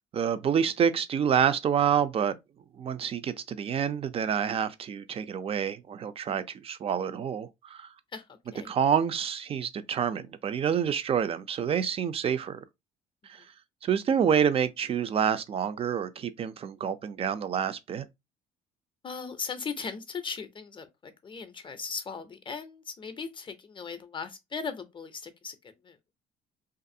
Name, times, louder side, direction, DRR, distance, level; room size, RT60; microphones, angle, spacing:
voice 1, 0.1-2.3 2.8-7.9 8.7-12.6 13.3-13.4 13.8-18.1, right 8 dB, 35° right, 0.4 m, -28 dB
voice 2, 8.1-8.7 13.2-13.4 19.0-26.0, left 5 dB, 30° left, 0.5 m, -38 dB
2.6 x 2.5 x 2.6 m
cardioid pair, 110°, 17 cm